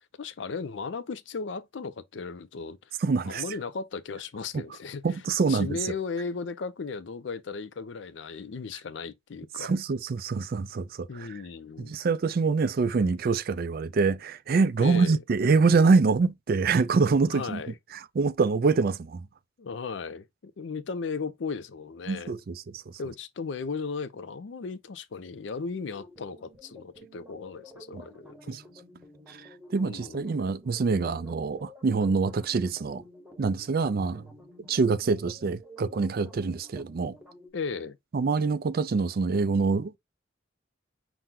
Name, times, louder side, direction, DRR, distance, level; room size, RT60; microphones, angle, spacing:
voice 1, 0.2-2.9 3.3-5.0 5.5-9.7 11.1-11.9 14.8-15.2 17.3-17.8 19.6-22.3 23.0-28.6 29.8-30.3 37.5-38.0, left 4 dB, 65° left, 0.5 m, -36 dB
voice 2, 3.0-3.4 4.5-4.6 5.0-5.9 9.6-11.3 11.8-17.6 18.2-19.3 22.1-22.8 27.9-28.0 28.5-28.6 29.3-33.0 33.4-34.3 34.7-37.1 38.1-40.0, right 4 dB, 50° right, 0.4 m, -25 dB
sound 1, 25.5-37.5, equal, 10° right, 1.1 m, -51 dB
5.9 x 2.1 x 3.6 m
head